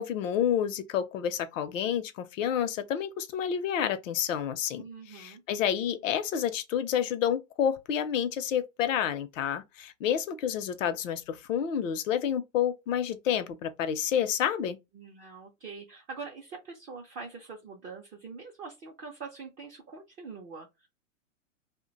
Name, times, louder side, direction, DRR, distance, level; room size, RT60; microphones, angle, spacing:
voice 1, 0.0-14.8, left 9 dB, 70° left, 0.7 m, -29 dB
voice 2, 4.8-5.4 14.9-20.9, right 4 dB, 20° right, 0.4 m, -44 dB
2.4 x 2.2 x 3.8 m
hypercardioid pair, 125°, 40 cm